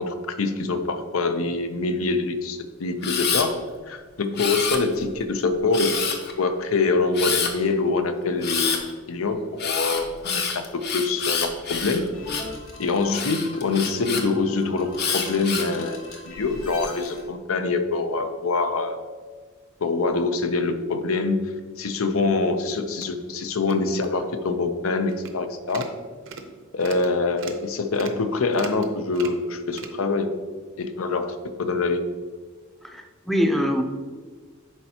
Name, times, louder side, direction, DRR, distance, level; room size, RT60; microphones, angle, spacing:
voice 1, 0.0-6.0 6.4-8.8 9.1-12.1 12.8-16.0 16.3-19.0 19.8-25.9 26.7-30.4 30.8-32.0, left 3 dB, 90° left, 8 dB, 0.6 m, -25 dB
Camera, 3.0-3.5 4.4-5.1 5.7-6.3 7.1-7.5 8.4-8.8 9.6-12.6 13.1-14.2 15.0-15.7 16.4-16.9, left 6 dB, 55° left, 0.8 m, -27 dB
sound 1, 12.1-17.2, left 2 dB, 70° left, 1.2 m, -41 dB
sound 2, 22.7-23.0 23.6-23.8 24.0-24.1 24.5-24.6 25.1-25.3 25.7-25.9 26.2-26.5 26.8-27.1 27.4-27.6 27.9-28.2 28.5-28.9 29.1-29.4 29.7-29.9, right 5 dB, 65° right, 0.7 m, -39 dB
voice 2, 32.8-33.8, equal, ahead, 4 dB, 0.5 m, -23 dB
10.5 x 4.5 x 2.8 m, 1.5 s
head